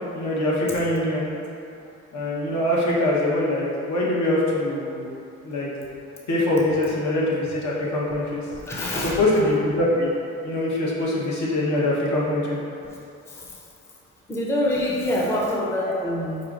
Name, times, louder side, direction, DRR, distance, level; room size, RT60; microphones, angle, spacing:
voice 1, 0.1-1.3 2.1-5.1 5.4-5.7 6.3-8.4 8.9-10.1 10.4-12.6 15.9-16.0, left 1 dB, 70° left, -5 dB, 0.9 m, -23 dB
voice 2, 8.5-9.2 14.3-16.4, left 1 dB, 10° left, -4 dB, 0.5 m, -25 dB
5.5 x 2.5 x 2.3 m, 2.7 s
cardioid pair, 90°, 30 cm